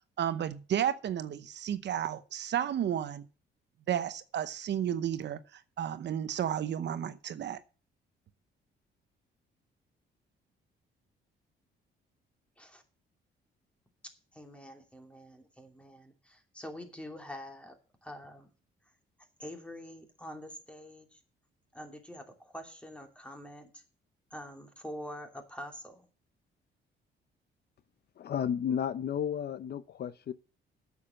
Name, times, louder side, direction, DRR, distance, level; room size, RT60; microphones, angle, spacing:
voice 1, 0.2-3.2 3.9-7.6, right 10 dB, 60° right, 0.8 m, -32 dB
voice 2, 14.0-17.8 18.0-18.5 19.4-21.2 21.7-23.8 24.3-26.1, equal, 5° left, 2.7 m, -46 dB
voice 3, 28.2-30.3, left 8 dB, 55° left, 0.6 m, -32 dB
8.5 x 7.2 x 7.6 m
cardioid pair, 90°, 20 cm